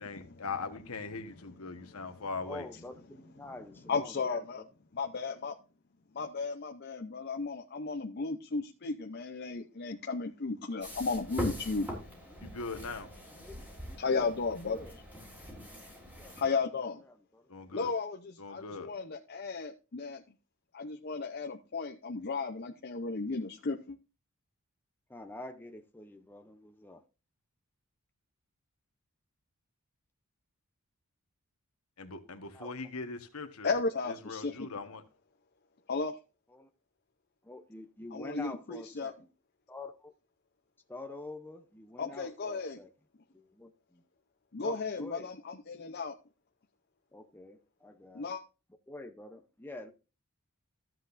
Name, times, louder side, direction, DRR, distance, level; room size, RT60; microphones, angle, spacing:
voice 1, 0.0-2.7 12.4-13.1 17.5-17.9 18.4-18.9 32.0-33.7 34.1-35.0, left 4 dB, 75° left, 1.3 m, -40 dB
voice 2, 1.7-2.2 3.9-4.6 5.0-5.6 6.1-11.9 14.0-14.8 16.4-17.0 17.7-20.2 20.7-24.0 33.6-34.7 35.9-36.2 38.1-39.1 42.0-42.8 44.5-46.2 48.1-48.4, left 4 dB, 45° left, 0.6 m, -34 dB
voice 3, 2.4-4.7 11.7-12.0 12.3-12.4 13.4-14.4 14.7-15.0 16.2-17.6 25.1-27.0 32.3-32.9 36.5-36.7 37.5-39.3 39.7-40.1 40.9-42.9 43.3-44.0 44.6-45.3 47.1-48.3 48.9-49.9, left 2 dB, 10° left, 0.6 m, -47 dB
sound 1, 10.8-16.4, equal, 10° right, 3.8 m, -42 dB
13.5 x 7.7 x 2.6 m
head